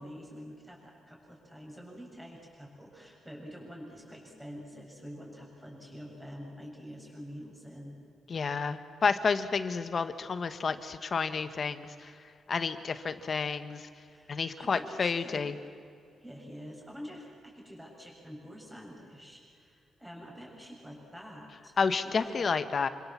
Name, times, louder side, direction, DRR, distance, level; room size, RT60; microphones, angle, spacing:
voice 1, 0.0-8.0 14.1-15.5 16.2-21.7 22.1-22.5, equal, 5° right, -1 dB, 6.9 m, -47 dB
voice 2, 8.3-12.1 12.5-13.9 14.3-15.5 21.8-22.9, left 5 dB, 35° left, 10 dB, 1.3 m, -30 dB
28.0 x 25.5 x 7.4 m, 2.4 s
wide cardioid pair, 160°, 0 cm